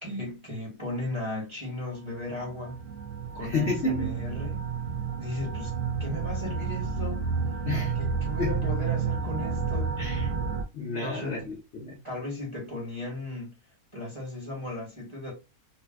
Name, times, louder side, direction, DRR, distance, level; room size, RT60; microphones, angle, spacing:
voice 1, 0.0-2.8 3.3-4.7 5.2-7.2 7.9-9.9 11.0-11.5 12.0-13.6 13.9-15.3, left 2 dB, 20° right, 1.1 m, -36 dB
sound 1, 1.8-10.6, right 5 dB, 70° right, 1.0 m, -31 dB
voice 2, 3.4-4.2 7.6-7.9 8.4-8.7 10.0-10.3 10.7-12.0, left 3 dB, 55° left, 0.9 m, -31 dB
3.7 x 2.2 x 2.2 m
omnidirectional pair, 1.6 m